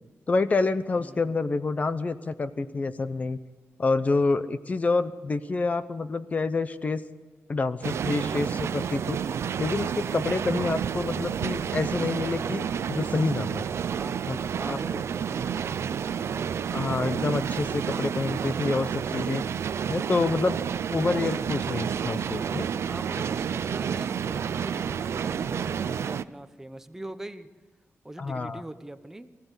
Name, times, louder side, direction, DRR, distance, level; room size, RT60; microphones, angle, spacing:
voice 1, 0.3-3.4 3.8-7.0 7.5-9.2 9.6-13.6 14.3-14.4 14.7-14.8 16.7-19.4 19.9-20.6 20.9-22.7 28.2-28.6, left 3 dB, 30° left, 13 dB, 0.8 m, -27 dB
voice 2, 0.9-1.3 10.2-10.7 14.0-16.2 22.9-27.5 28.0-29.3, right 1 dB, 10° right, 9 dB, 0.9 m, -42 dB
sound 1, 7.8-26.2, right 7 dB, 65° right, 0.6 m, -30 dB
24.0 x 15.5 x 8.2 m, 1.3 s
wide cardioid pair, 175°, 5 cm